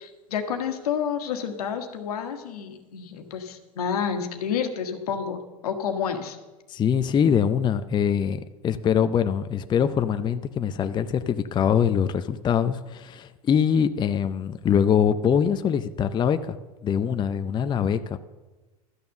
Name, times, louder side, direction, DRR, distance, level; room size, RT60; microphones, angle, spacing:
voice 1, 0.0-6.4, left 7 dB, 80° left, 6 dB, 1.4 m, -29 dB
voice 2, 6.7-16.6 16.8-18.2, left 8 dB, 25° left, 10 dB, 0.5 m, -23 dB
12.5 x 6.9 x 6.6 m, 1.2 s
hypercardioid pair, 95°, 19 cm